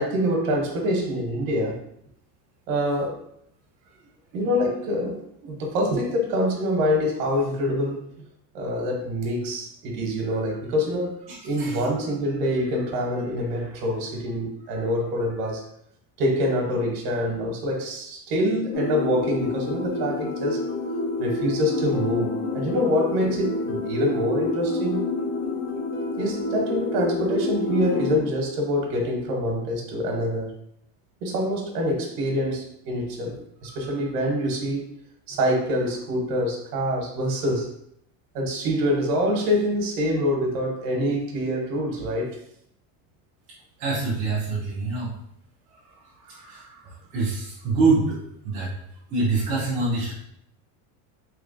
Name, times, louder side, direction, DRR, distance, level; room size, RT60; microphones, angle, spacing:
voice 1, 0.0-1.8 2.7-3.2 4.3-8.1 8.5-11.1 11.4-15.6 16.2-20.6 21.2-25.0 26.1-30.5 31.2-34.9 35.3-37.7 38.3-42.4 46.3-46.8, equal, 85° right, 1 dB, 1.1 m, -25 dB
voice 2, 11.3-11.8 43.8-45.1 46.5-46.6 47.1-48.2 48.4-48.7 49.1-50.1, right 3 dB, 15° right, -9 dB, 0.3 m, -25 dB
sound 1, 18.7-28.2, left 2 dB, 75° left, 0.8 m, -28 dB
3.2 x 3.2 x 2.5 m, 0.73 s
cardioid pair, 180°, 46 cm